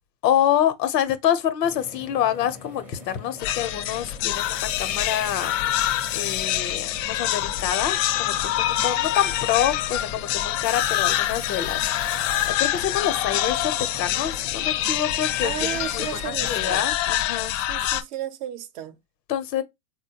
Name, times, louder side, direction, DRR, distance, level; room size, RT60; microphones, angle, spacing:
voice 1, 0.2-5.5 6.1-16.1 16.4-17.5 19.3-19.6, left 10 dB, 85° left, 0.8 m, -26 dB
sound 1, 1.6-16.7, left 2 dB, 5° right, 0.5 m, -42 dB
sound 2, 3.4-18.0, left 13 dB, 55° left, 0.5 m, -26 dB
voice 2, 15.4-16.9 17.5-19.0, right 11 dB, 55° right, 0.6 m, -34 dB
3.7 x 2.1 x 2.7 m
supercardioid pair, 125°, 48 cm